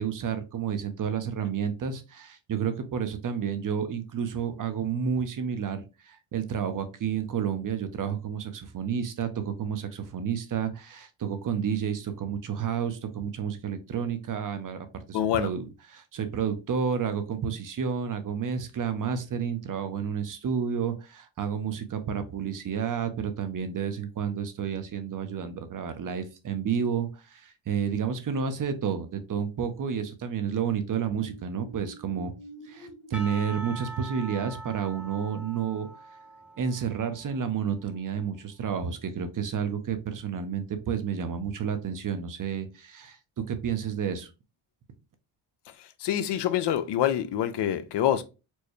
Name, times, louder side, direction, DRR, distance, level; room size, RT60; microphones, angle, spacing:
voice 1, 0.0-32.3 32.6-35.9 36.6-43.2 43.5-44.3, right 7 dB, 45° right, 0.6 m, -30 dB
voice 2, 15.1-15.5 45.8-48.2, left 11 dB, 60° left, 0.5 m, -26 dB
sound 1, 30.5-36.7 37.1-37.2, right 2 dB, 80° left, 1.0 m, -50 dB
Percussion / Church bell, 33.1-37.5, right 2 dB, 5° right, 0.4 m, -43 dB
4.4 x 2.2 x 3.0 m
cardioid pair, 95°, 47 cm